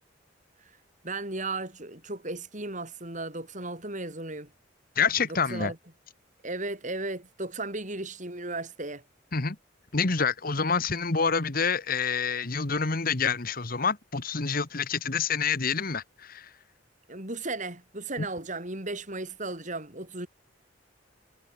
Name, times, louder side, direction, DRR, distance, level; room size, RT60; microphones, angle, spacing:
voice 1, 1.0-4.5 5.5-5.8 6.4-9.0 17.1-20.3, right 2 dB, 40° right, 7.4 m, -35 dB
voice 2, 4.9-5.7 9.3-9.6 9.9-16.5 18.2-18.3, left 5 dB, 50° left, 1.5 m, -27 dB
head